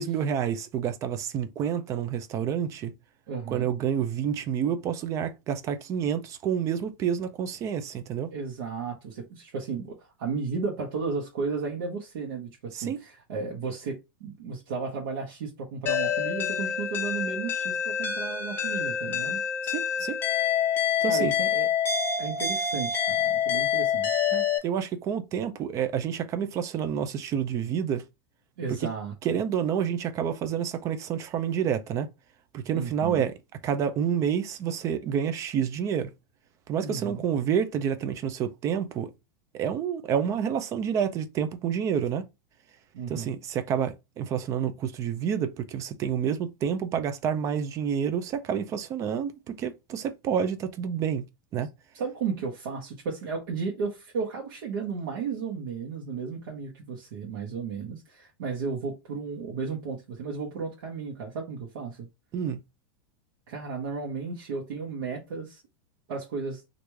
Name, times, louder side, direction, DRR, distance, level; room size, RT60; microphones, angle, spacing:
voice 1, 0.0-2.9 3.5-8.3 12.7-13.0 19.6-20.2 21.0-21.3 24.3-28.0 28.7-28.9 29.2-32.1 32.5-33.3 33.6-36.1 36.7-39.1 39.5-42.2 43.1-51.2 51.5-51.7 62.3-62.6, right 8 dB, 25° right, 0.4 m, -29 dB
voice 2, 3.3-3.7 8.3-19.4 21.1-21.7 22.2-24.2 28.6-29.1 32.7-33.2 36.8-37.2 42.9-43.3 51.9-62.1 63.5-65.6 66.1-66.6, right 5 dB, 70° right, 1.0 m, -34 dB
sound 1, 15.9-24.6, left 8 dB, 20° left, 0.9 m, -27 dB
3.1 x 2.5 x 3.2 m
supercardioid pair, 150°, 12 cm